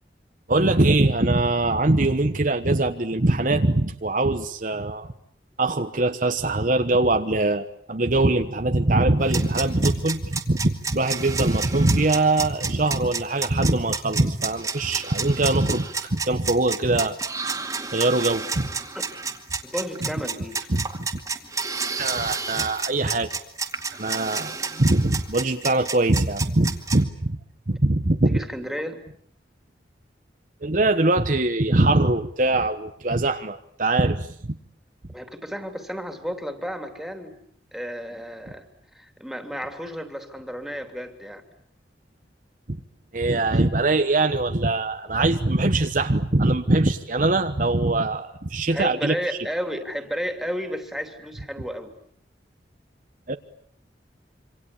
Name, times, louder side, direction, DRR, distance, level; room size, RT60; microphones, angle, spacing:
voice 1, 0.5-5.1 5.6-17.2 17.9-18.7 20.7-21.1 22.0-23.3 24.0-27.4 27.7-28.4 30.6-34.6 42.7-42.8 43.1-49.1 53.3-53.4, right 2 dB, 45° right, 7 dB, 1.2 m, -22 dB
sound 1, 9.2-27.0, right 5 dB, 20° right, 2.3 m, -30 dB
voice 2, 18.9-19.3 19.6-20.7 28.3-29.0 35.1-37.4 37.7-38.6 38.9-41.4 48.7-51.9, equal, ahead, 6 dB, 3.1 m, -32 dB
27.0 x 26.0 x 8.5 m, 0.64 s
head